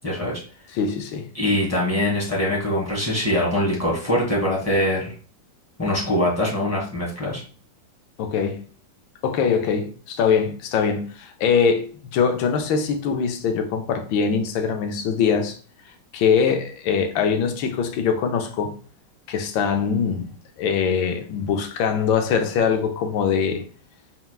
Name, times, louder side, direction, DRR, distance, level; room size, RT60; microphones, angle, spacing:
voice 1, 0.0-0.4 1.3-5.1 5.8-7.4, left 1 dB, 10° left, 1.5 m, -23 dB
voice 2, 0.7-1.3 8.2-8.6 9.2-15.6 16.1-18.8 19.3-20.3 20.6-23.6, left 6 dB, 80° left, 1.4 m, -22 dB
4.4 x 3.9 x 2.3 m
omnidirectional pair, 2.1 m